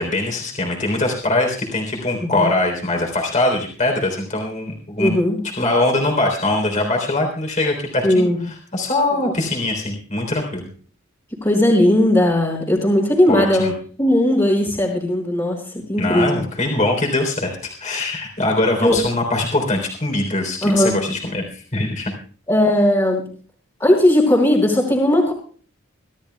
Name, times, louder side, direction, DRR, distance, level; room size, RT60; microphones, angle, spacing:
voice 1, 0.0-5.1 5.6-8.3 8.7-10.7 13.3-13.7 16.0-22.1, left 2 dB, 35° left, 2 dB, 3.6 m, -22 dB
voice 2, 5.0-5.4 8.0-8.4 11.4-13.7 14.0-16.4 18.8-19.0 20.6-20.9 22.5-23.2 23.8-25.3, left 1 dB, 20° left, -5 dB, 3.5 m, -17 dB
24.5 x 14.5 x 2.3 m, 0.42 s
head